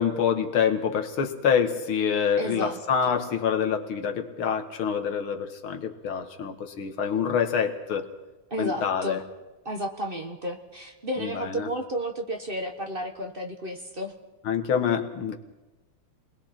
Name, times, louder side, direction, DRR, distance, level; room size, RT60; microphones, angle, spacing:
voice 1, 0.0-8.1 8.6-9.2 11.2-11.7 14.4-15.4, left 7 dB, 85° left, 5 dB, 2.3 m, -26 dB
voice 2, 2.4-3.1 8.5-9.2 9.6-14.1, equal, 30° right, 3 dB, 1.4 m, -32 dB
29.5 x 21.0 x 4.4 m, 1.1 s
omnidirectional pair, 2.2 m